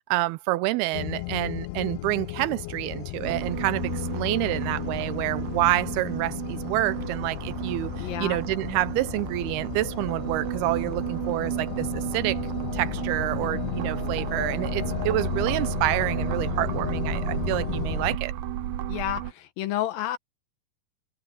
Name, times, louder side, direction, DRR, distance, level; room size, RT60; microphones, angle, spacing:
voice 1, 0.1-12.4 12.7-18.3, right 17 dB, 90° right, 2.6 m, -28 dB
sound 1, 0.9-18.2, left 20 dB, 90° left, 2.6 m, -34 dB
sound 2, 3.2-19.3, right 13 dB, 70° right, 2.6 m, -33 dB
voice 2, 8.0-8.4 18.9-20.2, left 13 dB, 70° left, 2.6 m, -30 dB
omnidirectional pair, 4.5 m